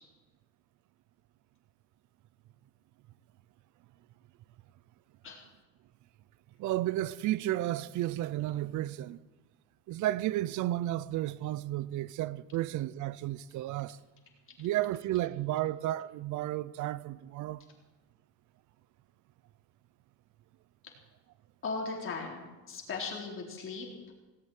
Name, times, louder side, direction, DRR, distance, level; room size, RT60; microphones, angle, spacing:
voice 1, 6.6-9.2 9.9-14.0 14.6-17.6, right 15 dB, 60° right, 0.7 m, -32 dB
voice 2, 21.6-22.4 22.7-23.9, left 4 dB, 40° left, 4.0 m, -37 dB
18.5 x 8.3 x 9.1 m
cardioid pair, 140°, 33 cm